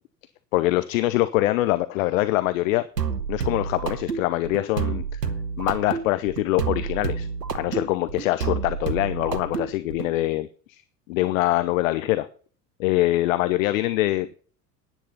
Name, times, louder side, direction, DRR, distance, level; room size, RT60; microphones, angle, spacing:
voice 1, 0.5-2.8 3.3-5.2 5.6-7.3 7.5-10.8 11.1-12.3 12.8-14.3, left 16 dB, 55° left, 14 dB, 0.8 m, -24 dB
sound 1, 3.0-10.1, right 6 dB, 85° right, 1.1 m, -29 dB
10.0 x 9.8 x 5.5 m, 0.42 s
figure-of-eight pair, 75°, 48 cm